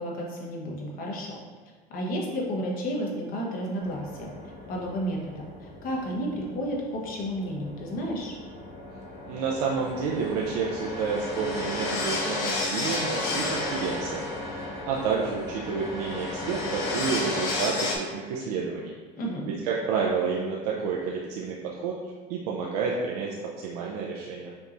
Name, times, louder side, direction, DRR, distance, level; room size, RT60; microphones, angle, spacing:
voice 1, 0.0-1.4 1.9-4.3 4.7-5.5 5.8-8.3 19.2-19.5, equal, 45° left, -1 dB, 1.1 m, -31 dB
sound 1, 3.8-18.0, left 2 dB, 70° left, 0.9 m, -33 dB
voice 2, 9.3-18.9 19.5-21.9 22.3-24.5, right 5 dB, 85° right, -3 dB, 0.5 m, -30 dB
5.5 x 3.0 x 2.6 m, 1.4 s
supercardioid pair, 120°, 20 cm